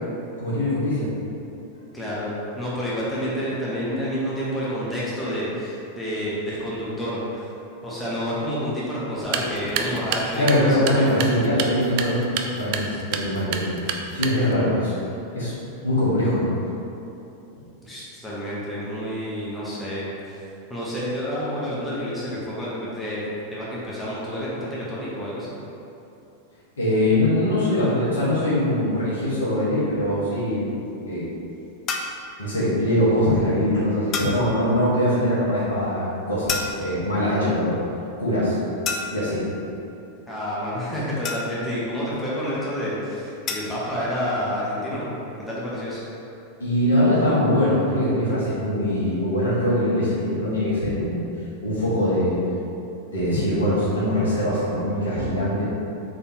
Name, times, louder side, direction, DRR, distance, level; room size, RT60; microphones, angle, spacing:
voice 1, 0.4-1.1 10.4-12.2 12.5-13.8 14.1-14.9 15.3-15.5 15.8-16.5 26.8-30.6 31.1-31.3 32.4-37.8 38.2-38.6 39.1-39.5 46.6-51.2 51.6-52.4 53.1-55.6, left 1 dB, 70° left, -9 dB, 1.4 m, -22 dB
voice 2, 1.9-7.5 7.8-11.2 17.8-20.4 20.7-25.5 40.3-46.0, equal, 10° left, -8 dB, 0.9 m, -29 dB
sound 1, 9.1-14.7, right 6 dB, 45° right, 0.3 m, -30 dB
sound 2, 31.9-32.3 34.1-34.5 36.5-37.1 38.8-39.4 41.2-41.8 43.5-43.8, left 4 dB, 30° left, 0.4 m, -29 dB
4.1 x 3.5 x 2.9 m, 2.8 s
figure-of-eight pair, 90°, 0 cm